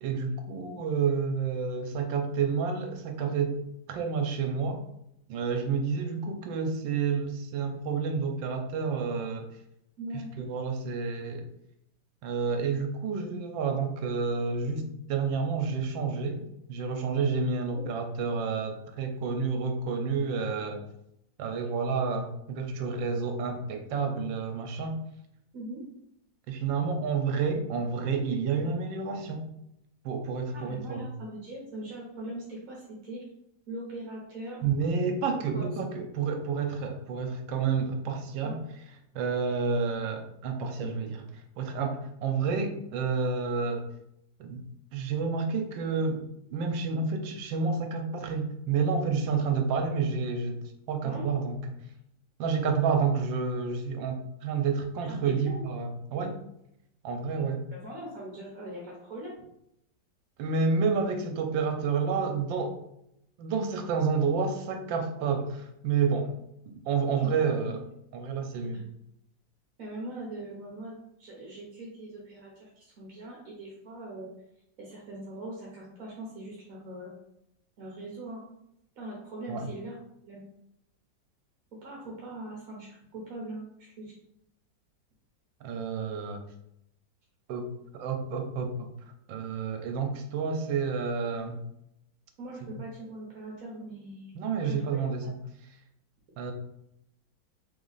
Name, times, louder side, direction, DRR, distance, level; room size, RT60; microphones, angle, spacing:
voice 1, 0.0-3.6 3.9-4.8 5.3-9.5 10.4-11.5 12.2-16.4 16.7-20.8 21.4-25.0 26.5-29.5 30.0-31.1 34.6-38.6 39.1-41.2 41.6-43.9 44.4-44.6 44.9-46.3 46.5-50.6 50.9-51.8 52.4-56.4 57.0-57.6 60.4-62.8 63.4-66.4 66.9-67.8 68.1-68.8 79.5-79.7 85.6-86.4 87.5-88.9 89.3-91.6 94.3-95.3 96.4-96.5, right 5 dB, 85° right, 5 dB, 1.3 m, -29 dB
voice 2, 10.0-10.3 17.7-17.8 25.5-25.8 30.5-33.2 33.7-34.6 35.5-35.7 38.4-38.5 51.0-51.2 55.0-55.6 57.4-57.5 57.7-59.3 67.1-67.3 67.7-67.8 69.8-74.3 74.8-77.1 77.8-78.5 79.0-80.0 80.2-80.4 81.8-83.6 84.0-84.1 92.4-95.0, right 1 dB, 55° right, -4 dB, 1.2 m, -41 dB
3.4 x 3.0 x 3.9 m, 0.77 s
omnidirectional pair, 2.1 m